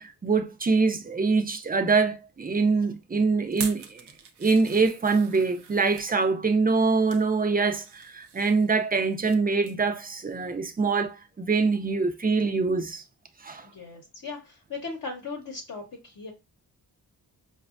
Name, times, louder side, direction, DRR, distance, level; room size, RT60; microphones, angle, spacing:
voice 1, 0.0-4.0 4.4-13.0 13.4-13.7, right 4 dB, 25° right, 0.5 m, -24 dB
sound 1, 3.5-6.1 6.7-7.3 7.7-9.4 9.6-9.9 10.3-10.4, right 6 dB, 80° right, 0.6 m, -42 dB
voice 2, 13.6-16.3, left 4 dB, 50° left, 0.8 m, -38 dB
4.8 x 2.2 x 2.4 m
wide cardioid pair, 110°, 40 cm